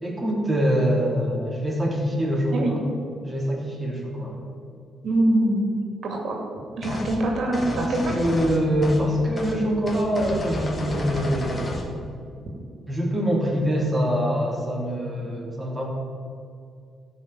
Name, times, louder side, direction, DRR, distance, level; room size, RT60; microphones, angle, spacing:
voice 1, 0.0-2.8 3.2-4.4 7.8-11.8 12.9-15.9, equal, 10° right, -3 dB, 3.2 m, -24 dB
voice 2, 5.0-5.7 6.0-6.4 6.8-8.1, right 1 dB, 60° right, 0 dB, 2.5 m, -23 dB
sound 1, 6.8-7.2 7.5-9.1 9.4-9.6 9.9-11.9, left 1 dB, 25° left, 2.0 m, -31 dB
13.0 x 5.7 x 9.2 m, 2.4 s
cardioid pair, 90°, 0 cm